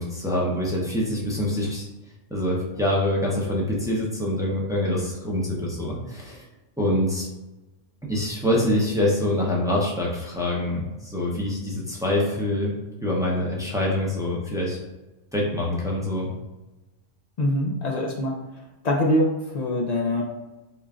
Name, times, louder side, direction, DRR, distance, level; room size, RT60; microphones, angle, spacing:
voice 1, 0.0-1.9 2.3-6.4 6.8-7.3 8.1-12.7 13.0-14.8 15.3-16.3, left 1 dB, 5° right, -4 dB, 0.5 m, -25 dB
voice 2, 17.4-18.3 18.8-20.2, left 1 dB, 60° left, 0 dB, 0.4 m, -23 dB
3.7 x 2.3 x 3.6 m, 1.0 s
omnidirectional pair, 1.3 m